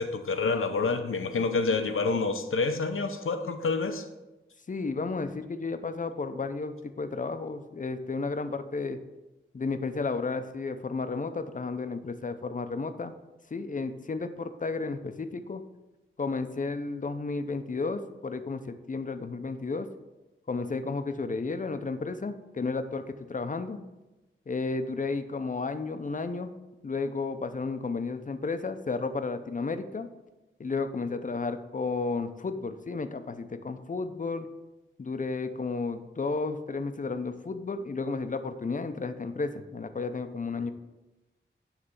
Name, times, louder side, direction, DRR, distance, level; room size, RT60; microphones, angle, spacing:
voice 1, 0.0-4.1, left 4 dB, 85° left, 7 dB, 0.7 m, -28 dB
voice 2, 4.7-9.0 9.5-13.1 13.5-15.6 16.2-19.9 20.5-23.8 24.5-26.5 26.8-30.1 30.6-34.5 35.0-40.7, left 4 dB, 40° left, 9 dB, 0.6 m, -32 dB
9.7 x 3.3 x 5.3 m, 1.0 s
wide cardioid pair, 90°, 21 cm